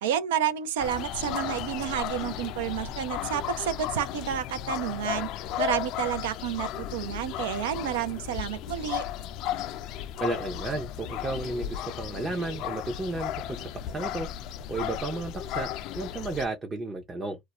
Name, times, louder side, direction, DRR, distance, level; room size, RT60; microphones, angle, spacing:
voice 1, 0.0-5.3 5.6-9.0, right 10 dB, 85° right, 0.5 m, -30 dB
sound 1, 0.8-16.5, left 11 dB, 60° left, 0.3 m, -35 dB
voice 2, 10.2-14.3 14.7-17.4, right 2 dB, 25° right, 0.6 m, -33 dB
2.3 x 2.1 x 2.9 m
hypercardioid pair, 80°, 0 cm